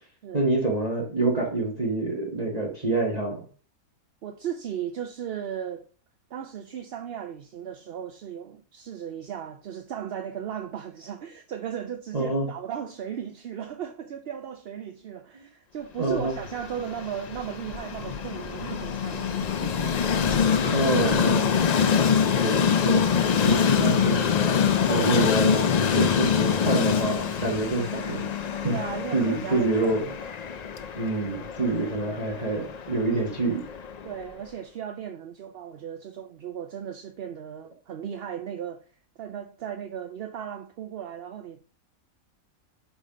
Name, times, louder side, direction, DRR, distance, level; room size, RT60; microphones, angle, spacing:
voice 1, 0.3-3.4 12.1-12.5 16.0-16.4 20.6-21.5 22.3-24.4 24.9-28.2 28.6-28.8 29.1-30.0 31.0-33.6, right 2 dB, 30° right, 1.5 m, -27 dB
voice 2, 4.2-5.9 6.3-20.0 21.8-22.2 24.9-25.2 28.6-30.1 34.0-38.8 39.2-41.7, right 9 dB, 60° right, 0.7 m, -36 dB
Train, 16.2-34.2, left 7 dB, 70° left, 0.3 m, -25 dB
5.4 x 5.0 x 4.9 m
omnidirectional pair, 1.5 m